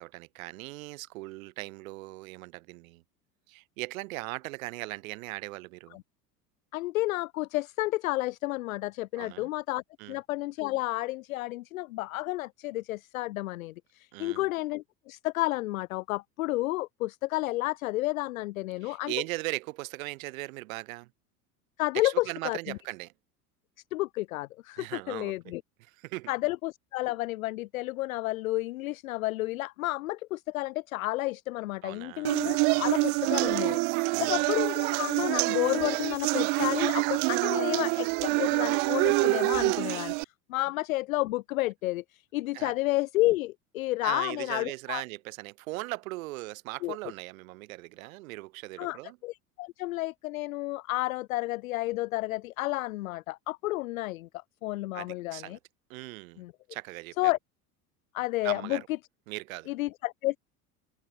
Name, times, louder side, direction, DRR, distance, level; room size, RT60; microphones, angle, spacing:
voice 1, 0.0-3.0 3.5-6.0 9.2-9.5 10.0-10.2 14.1-14.4 18.8-21.1 21.9-23.1 24.8-25.5 25.9-26.3 31.8-32.3 34.1-34.4 42.5-42.7 44.0-49.2 54.9-55.6 55.9-56.4 56.7-57.3 58.4-58.9 59.3-59.7, right 21 dB, 55° right, 2.7 m, -39 dB
voice 2, 6.7-9.8 10.1-19.1 21.8-22.8 23.9-25.6 26.3-33.8 34.2-40.1 40.5-45.0 46.8-47.0 48.8-54.3 54.6-55.6 56.4-56.5 57.2-57.4 58.1-58.8 59.7-60.4, left 19 dB, 60° left, 0.6 m, -31 dB
sound 1, 32.2-40.2, right 31 dB, 25° right, 0.3 m, -26 dB
figure-of-eight pair, 75°, 47 cm